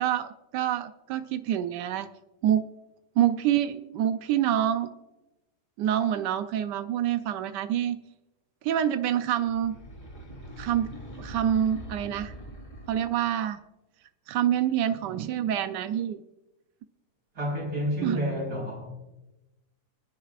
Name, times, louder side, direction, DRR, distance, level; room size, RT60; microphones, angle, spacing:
voice 1, 0.0-2.1 2.4-2.6 3.2-4.9 5.8-8.0 8.6-9.8 10.6-10.9 11.2-12.3 12.9-13.6 14.3-16.2 18.0-18.2, right 10 dB, 90° right, 10 dB, 1.2 m, -26 dB
sound 1, 9.3-13.3, right 1 dB, 30° left, 2.5 m, -43 dB
voice 2, 17.3-18.9, equal, 60° right, -3 dB, 5.0 m, -30 dB
26.0 x 10.0 x 2.4 m, 0.98 s
omnidirectional pair, 1.8 m